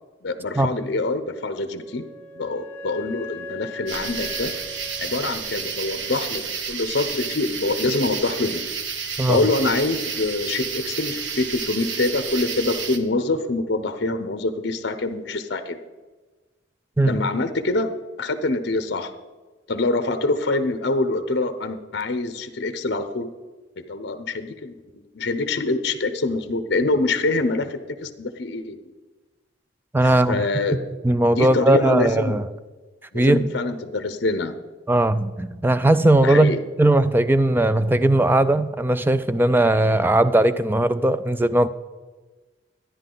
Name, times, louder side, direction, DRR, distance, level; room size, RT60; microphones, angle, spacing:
voice 1, 0.2-2.1 2.3-4.5 5.0-8.7 9.3-15.8 17.0-17.9 18.2-19.1 19.7-23.3 23.8-28.8 30.0-30.8 31.3-32.4 33.1-34.5 36.2-36.6, left 2 dB, 60° left, 0.7 m, -25 dB
Wind instrument woodwind instrument, 1.7-6.3, left 2 dB, 10° left, 1.9 m, -39 dB
sound 1, 3.9-13.0, right 6 dB, 70° right, 1.0 m, -31 dB
voice 2, 29.9-30.4 31.0-32.5 33.1-33.5 34.9-41.7, right 1 dB, 10° right, 0.3 m, -18 dB
12.5 x 9.9 x 3.9 m
head